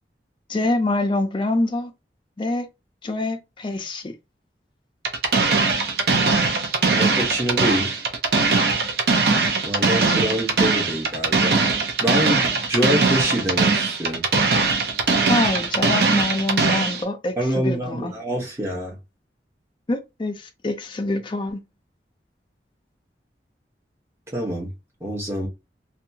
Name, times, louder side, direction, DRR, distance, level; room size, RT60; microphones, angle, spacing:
voice 1, 0.5-1.9 2.4-2.7 3.0-4.1 15.3-18.1 19.9-21.6, left 2 dB, 30° left, 0.4 m, -25 dB
sound 1, 5.0-17.0, right 4 dB, 65° right, 0.6 m, -20 dB
voice 2, 6.9-8.0 9.6-11.6 12.0-14.2 17.4-19.0 24.3-24.7 25.0-25.5, equal, 15° right, 0.8 m, -26 dB
2.7 x 2.2 x 2.7 m
head